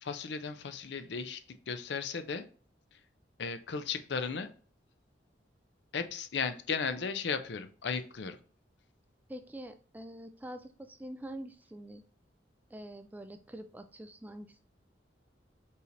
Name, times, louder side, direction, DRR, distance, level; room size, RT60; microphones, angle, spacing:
voice 1, 0.0-2.5 2.9-3.0 3.4-4.5 5.9-8.4, left 5 dB, 70° left, 10 dB, 0.5 m, -35 dB
voice 2, 9.3-12.0 12.7-14.6, right 1 dB, 10° right, 8 dB, 0.3 m, -45 dB
5.4 x 3.3 x 2.5 m, 0.42 s
head